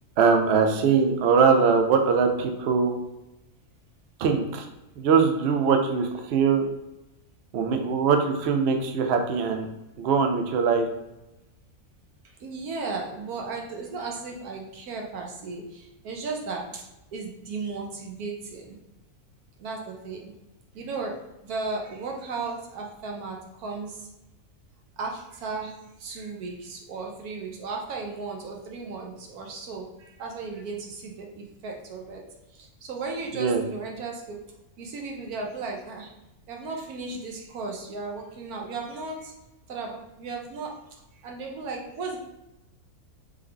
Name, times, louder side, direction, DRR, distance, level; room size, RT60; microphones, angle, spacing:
voice 1, 0.2-2.9 4.2-4.7 5.0-6.7 7.5-9.7 10.0-10.9 33.4-33.6, right 5 dB, 65° right, 5 dB, 0.7 m, -22 dB
voice 2, 12.4-16.8 17.1-18.8 19.6-20.3 20.7-21.2 21.4-24.0 25.0-25.7 26.0-32.2 32.6-34.4 34.8-36.1 36.5-39.3 39.7-40.7 41.2-42.2, right 4 dB, 85° right, 1 dB, 1.3 m, -35 dB
3.5 x 3.5 x 3.3 m, 0.94 s
omnidirectional pair, 1.5 m